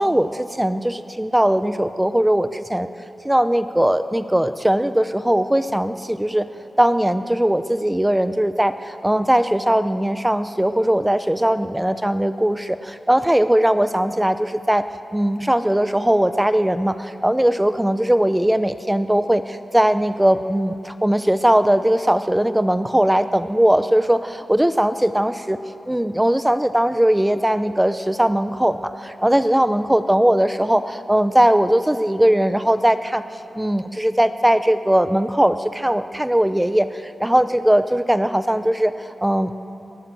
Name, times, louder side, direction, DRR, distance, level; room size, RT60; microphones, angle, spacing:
voice 1, 0.0-2.9 3.2-6.5 6.8-25.6 25.9-33.2 33.6-39.5, right 1 dB, 10° right, 11 dB, 0.7 m, -19 dB
23.0 x 18.5 x 7.6 m, 2.9 s
cardioid pair, 75°, 0 cm